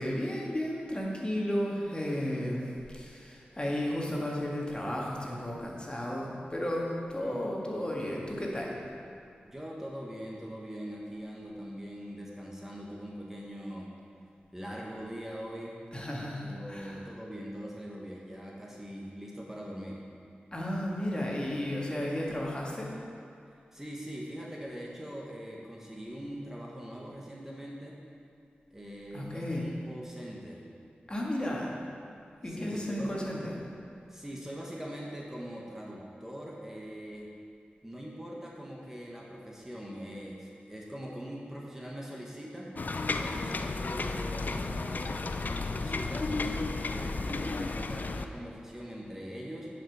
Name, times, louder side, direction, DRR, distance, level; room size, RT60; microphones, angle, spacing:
voice 1, 0.0-8.8 15.9-17.0 20.5-22.9 29.1-29.7 31.1-31.7 32.4-33.6, left 1 dB, 25° left, -3 dB, 1.8 m, -33 dB
voice 2, 9.5-13.9 14.5-15.8 16.4-20.0 23.7-28.0 28.7-30.6 32.5-33.1 34.1-37.3 37.8-42.7 43.2-49.7, equal, 10° right, -3 dB, 1.3 m, -42 dB
sound 1, 42.8-48.3, left 3 dB, 55° left, 0.4 m, -33 dB
10.0 x 5.2 x 4.7 m, 2.4 s
cardioid pair, 40°, 4 cm